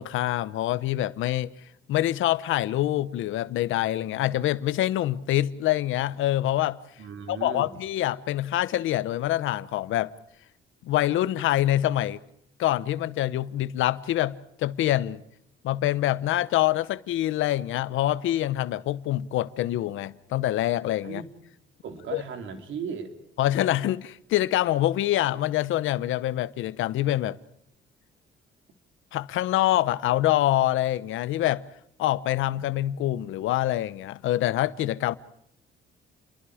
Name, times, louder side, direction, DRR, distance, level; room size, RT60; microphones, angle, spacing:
voice 1, 0.0-1.5 1.9-6.8 7.3-10.1 10.8-12.2 12.6-15.2 15.6-21.2 22.1-22.2 23.4-27.4 29.1-31.6 32.0-35.2, left 14 dB, 85° left, 0.9 m, -25 dB
voice 2, 7.0-7.8 21.0-21.3 21.8-23.2 32.5-32.6, right 6 dB, 75° right, 3.4 m, -36 dB
30.0 x 22.5 x 5.0 m
cardioid pair, 90°, 20 cm